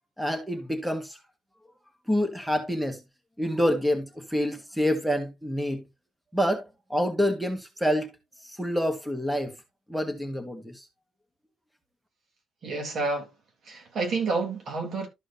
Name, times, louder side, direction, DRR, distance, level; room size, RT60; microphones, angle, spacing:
voice 1, 0.2-1.2 2.1-3.0 3.4-5.8 6.3-8.1 8.5-9.5 9.9-10.8, equal, 5° right, 1.8 m, -27 dB
voice 2, 12.6-13.3 13.6-15.1, right 3 dB, 60° right, 3.2 m, -29 dB
13.0 x 5.0 x 2.8 m
cardioid pair, 90°, 0 cm